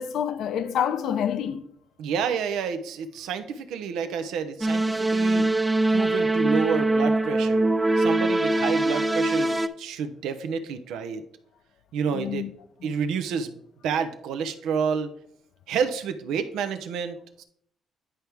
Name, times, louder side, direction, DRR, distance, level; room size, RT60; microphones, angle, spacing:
voice 1, 0.0-1.7 5.4-5.6 12.1-12.5 12.8-12.9, left 9 dB, 80° left, 0.6 m, -28 dB
voice 2, 2.0-5.4 5.9-7.7 8.0-11.2 11.9-12.5 12.8-15.1 15.7-17.4, right 6 dB, 90° right, 0.7 m, -29 dB
sound 1, 4.6-9.7, right 2 dB, 15° right, 0.4 m, -23 dB
10.0 x 4.6 x 3.4 m
cardioid pair, 90°, 0 cm